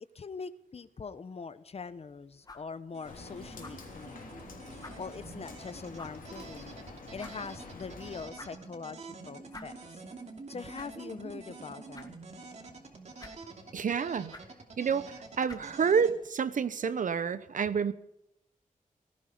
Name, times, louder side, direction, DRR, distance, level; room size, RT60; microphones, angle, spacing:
voice 1, 0.1-4.5 5.0-6.7 7.1-10.0 10.5-12.1, left 5 dB, 45° left, 14 dB, 0.8 m, -43 dB
sound 1, 1.7-16.5, left 2 dB, 30° left, 1.9 m, -55 dB
sound 2, 2.9-16.1, right 3 dB, 55° right, 2.8 m, -48 dB
Rain, 3.0-8.2, left 3 dB, 75° left, 3.5 m, -47 dB
voice 2, 13.7-14.3 14.8-17.9, right 6 dB, 70° right, 14 dB, 0.9 m, -29 dB
18.0 x 14.5 x 5.0 m, 0.81 s
wide cardioid pair, 140°, 14 cm